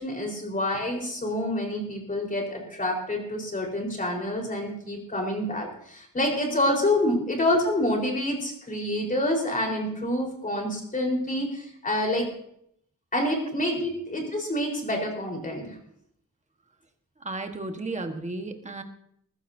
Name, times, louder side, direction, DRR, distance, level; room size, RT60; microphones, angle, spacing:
voice 1, 0.0-12.3 13.1-15.7, left 1 dB, 25° left, 0 dB, 4.3 m, -27 dB
voice 2, 17.2-18.8, right 2 dB, 20° right, 5 dB, 1.4 m, -34 dB
20.0 x 15.5 x 2.7 m, 0.71 s
wide cardioid pair, 150°, 33 cm